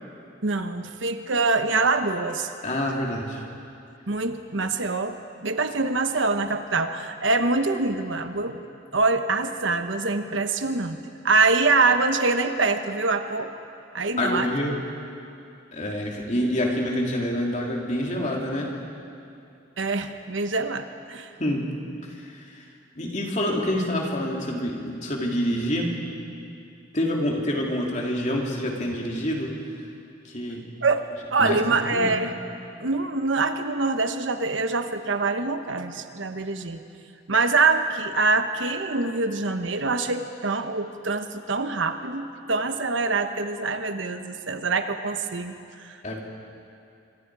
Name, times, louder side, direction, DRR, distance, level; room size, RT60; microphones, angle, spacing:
voice 1, 0.4-2.5 4.1-8.6 8.9-11.0 11.2-13.5 13.9-14.5 19.8-21.3 30.8-31.0 31.3-32.3 32.8-36.8 37.3-45.5 45.8-46.0, right 3 dB, 70° right, 8 dB, 1.1 m, -24 dB
voice 2, 2.6-3.4 14.2-14.7 15.7-18.7 21.4-21.7 22.1-22.6 22.9-25.9 26.9-29.5 30.2-30.7 31.4-32.1 46.0-46.2, equal, 40° left, -1 dB, 3.1 m, -27 dB
25.5 x 24.5 x 4.9 m, 2.6 s
head